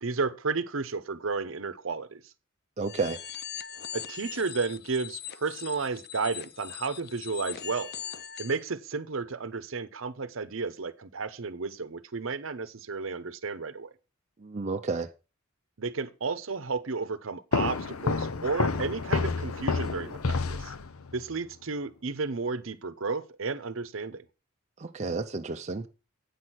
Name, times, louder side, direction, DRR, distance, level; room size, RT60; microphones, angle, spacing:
voice 1, 0.0-2.3 3.9-7.9 8.4-13.9 15.8-20.7 21.1-24.2, right 4 dB, 70° right, 0.8 m, -32 dB
sound 1, 2.8-8.6, left 9 dB, 50° left, 0.5 m, -41 dB
voice 2, 2.8-3.2 14.4-15.1 24.8-25.9, right 4 dB, 35° right, 0.5 m, -31 dB
sound 2, 17.5-21.2, left 4 dB, 90° left, 0.8 m, -29 dB
8.5 x 6.3 x 5.7 m
head